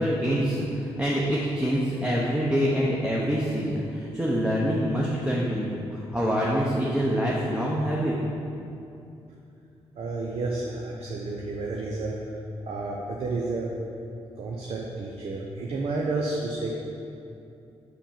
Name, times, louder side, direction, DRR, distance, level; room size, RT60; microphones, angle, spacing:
voice 1, 0.0-8.1, equal, 10° right, -5 dB, 0.9 m, -25 dB
voice 2, 10.0-12.2 12.7-13.7 14.4-16.7, right 3 dB, 65° right, -2 dB, 0.7 m, -31 dB
5.3 x 5.0 x 5.8 m, 2.7 s
cardioid pair, 85°, 11 cm